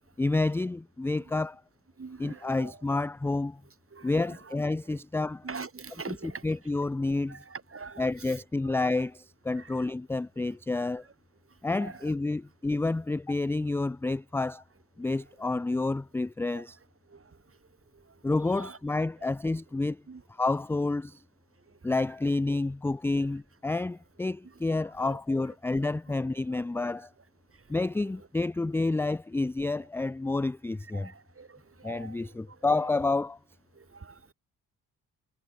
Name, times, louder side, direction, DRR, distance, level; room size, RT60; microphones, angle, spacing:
voice 1, 0.2-1.6 2.2-3.6 4.0-5.5 6.1-6.2 6.4-7.4 8.0-11.0 11.6-14.6 15.0-16.8 18.2-20.0 20.3-21.2 21.8-27.1 27.7-31.1 31.8-33.4, left 2 dB, 5° left, 0.4 m, -29 dB
voice 2, 2.0-2.7 3.9-4.6 5.4-6.5 7.3-8.4 9.5-9.8 10.7-10.9 11.5-12.1 15.0-15.1 16.5-16.6 17.1-17.6 17.9-18.2 18.5-18.8 20.1-20.2 21.7-22.0 24.4-24.5 25.0-25.2 26.5-26.6 27.5-27.7 30.9-32.8 33.7-34.3, right 4 dB, 30° right, 3.6 m, -45 dB
hypercardioid pair, 45°, 42 cm